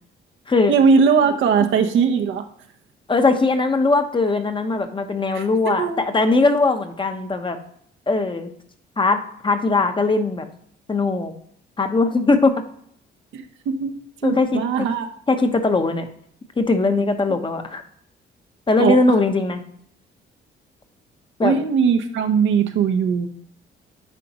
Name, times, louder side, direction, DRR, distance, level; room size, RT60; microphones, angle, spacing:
voice 1, 0.7-2.5 5.3-6.1 13.3-15.1 18.8-19.0 21.4-23.3, right 6 dB, 80° right, 5 dB, 0.8 m, -20 dB
voice 2, 3.1-7.6 8.1-8.5 9.0-10.4 10.9-11.3 11.8-12.6 14.2-14.9 15.3-16.1 16.6-17.8 18.7-19.6 21.4-21.6, left 3 dB, 25° left, 7 dB, 1.0 m, -20 dB
9.8 x 3.8 x 2.9 m, 0.67 s
cardioid pair, 90°, 20 cm